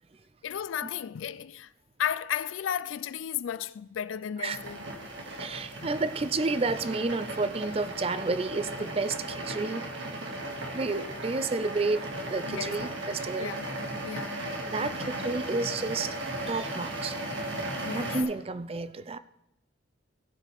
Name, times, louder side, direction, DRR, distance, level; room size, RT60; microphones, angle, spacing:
voice 1, 0.4-1.7 2.0-4.8 12.5-12.8 13.4-13.8 14.0-14.5 14.8-15.1 17.8-18.2, left 9 dB, 80° left, 0.4 m, -34 dB
sound 1, 4.5-18.2, right 1 dB, 75° right, 1.8 m, -36 dB
voice 2, 5.3-9.9 10.7-13.5 14.6-16.2 16.5-17.2 17.8-19.2, right 3 dB, 30° right, 0.4 m, -31 dB
17.5 x 7.9 x 3.5 m
head